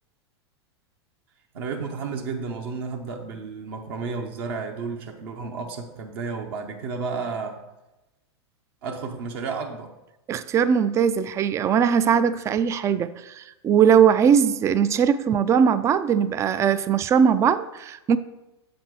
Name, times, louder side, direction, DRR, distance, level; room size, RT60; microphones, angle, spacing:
voice 1, 1.5-7.6 8.8-9.9, right 4 dB, 60° right, 0.9 m, -32 dB
voice 2, 10.3-18.2, right 7 dB, 20° right, 0.3 m, -20 dB
7.3 x 4.3 x 4.7 m
hypercardioid pair, 100°, 14 cm